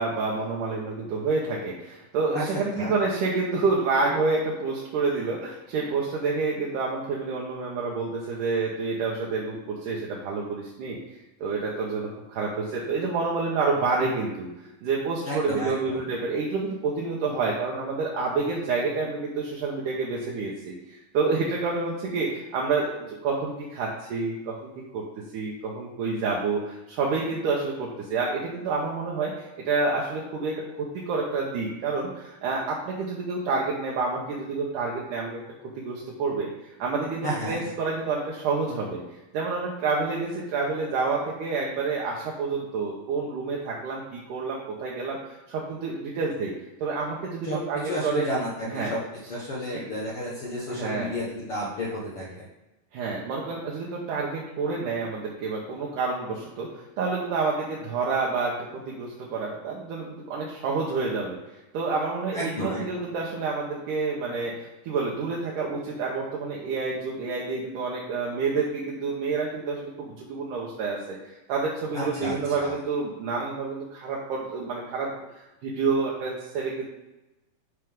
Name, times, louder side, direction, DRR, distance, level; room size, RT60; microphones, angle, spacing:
voice 1, 0.0-11.0 11.4-14.5 14.8-25.0 25.3-35.4 35.8-36.5 36.8-39.0 39.3-45.2 45.5-46.5 46.8-48.3 48.7-48.9 49.7-49.8 50.7-51.1 52.9-61.4 61.7-71.2 71.5-75.1 75.6-76.9, right 4 dB, 70° right, -3 dB, 2.3 m, -28 dB
voice 2, 15.2-16.0 37.2-37.7 47.4-47.6 47.8-49.0 49.3-52.4 62.3-62.8 71.9-72.7, equal, 55° left, -7 dB, 1.6 m, -31 dB
11.0 x 4.6 x 3.6 m, 0.99 s
omnidirectional pair, 4.3 m